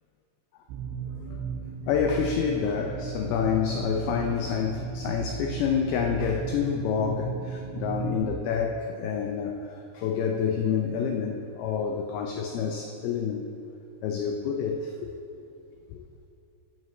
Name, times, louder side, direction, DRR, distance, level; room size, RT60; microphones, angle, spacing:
sound 1, 0.7-8.3, right 6 dB, 80° right, 2.3 m, -35 dB
voice 1, 1.9-13.5 14.0-15.1 15.9-16.0, left 7 dB, 85° left, 3 dB, 2.2 m, -28 dB
14.5 x 9.0 x 3.2 m, 2.7 s
omnidirectional pair, 5.1 m